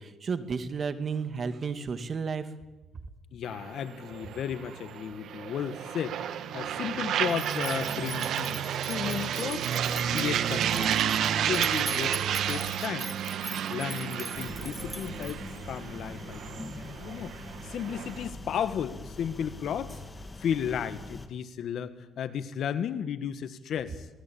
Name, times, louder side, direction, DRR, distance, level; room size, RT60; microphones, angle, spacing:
voice 1, 0.0-2.5, right 5 dB, 45° right, 10 dB, 2.1 m, -32 dB
voice 2, 3.3-12.2 12.5-13.1 13.7-16.4 16.7-17.3 17.6-20.0 20.4-24.1, left 8 dB, 70° left, 13 dB, 1.6 m, -34 dB
sound 1, 3.5-18.3, right 9 dB, 75° right, 1.6 m, -31 dB
sound 2, 7.3-15.6, equal, ahead, 2.1 m, -42 dB
sound 3, 14.3-21.3, left 2 dB, 20° left, 2.4 m, -43 dB
23.5 x 18.0 x 8.7 m, 1.1 s
cardioid pair, 85°, 0 cm